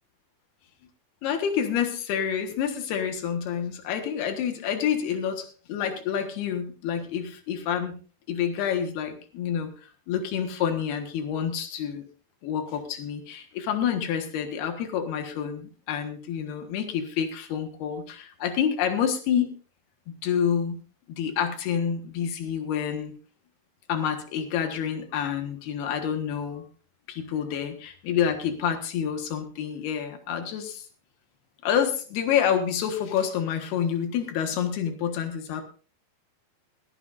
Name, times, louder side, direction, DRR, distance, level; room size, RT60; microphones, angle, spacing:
voice 1, 1.2-8.0 8.3-12.0 12.4-19.5 20.1-20.8 21.2-23.1 23.9-26.6 27.1-30.9 31.6-35.6, left 8 dB, 90° left, 7 dB, 3.5 m, -28 dB
22.5 x 11.5 x 2.6 m, 0.37 s
omnidirectional pair, 4.4 m